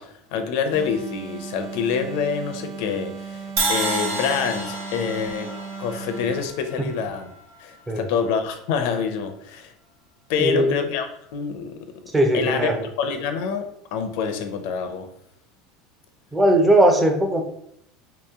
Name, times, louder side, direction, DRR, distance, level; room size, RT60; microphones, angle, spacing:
voice 1, 0.0-5.5 5.8-7.3 7.6-9.7 10.3-11.8 12.3-12.7 13.0-15.1, left 6 dB, 70° left, 7 dB, 0.5 m, -26 dB
sound 1, 0.7-6.6, right 5 dB, 55° right, 0.6 m, -37 dB
Crash cymbal, 3.6-7.6, right 3 dB, 80° right, 1.2 m, -29 dB
voice 2, 10.4-10.8 12.1-12.8 16.3-17.4, right 1 dB, 10° right, 3 dB, 0.5 m, -18 dB
3.0 x 3.0 x 3.5 m, 0.73 s
supercardioid pair, 145°, 0 cm